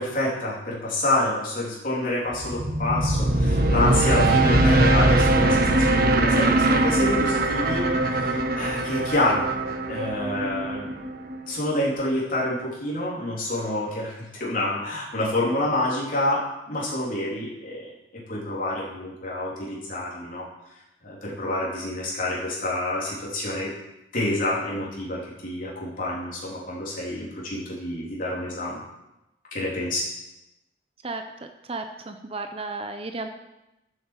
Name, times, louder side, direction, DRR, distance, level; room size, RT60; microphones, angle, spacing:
voice 1, 0.0-9.5 9.9-11.1 11.5-17.8 18.3-20.4 21.0-23.7 24.1-28.8 29.5-30.0, left 1 dB, 50° left, -5 dB, 3.2 m, -27 dB
sound 1, 2.3-11.5, right 2 dB, 55° right, 1.2 m, -22 dB
voice 2, 31.6-33.3, right 3 dB, 30° right, 6 dB, 0.8 m, -33 dB
12.5 x 7.7 x 7.4 m, 0.93 s
head